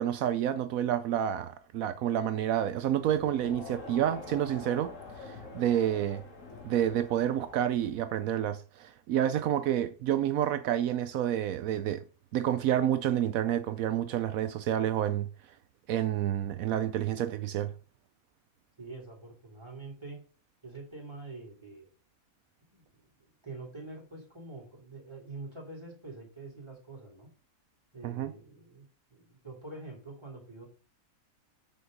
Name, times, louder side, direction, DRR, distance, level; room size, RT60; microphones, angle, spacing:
voice 1, 0.0-6.2 6.6-12.0 12.3-15.3 15.9-17.7 28.0-28.3, right 11 dB, 75° right, 1.0 m, -29 dB
Crowd, 2.9-8.1, left 3 dB, 60° left, 2.2 m, -46 dB
voice 2, 18.8-20.2 20.6-21.9 22.7-27.3 27.9-28.8 29.1-30.7, right 3 dB, 20° right, 3.3 m, -45 dB
8.0 x 6.5 x 3.9 m
omnidirectional pair, 1.5 m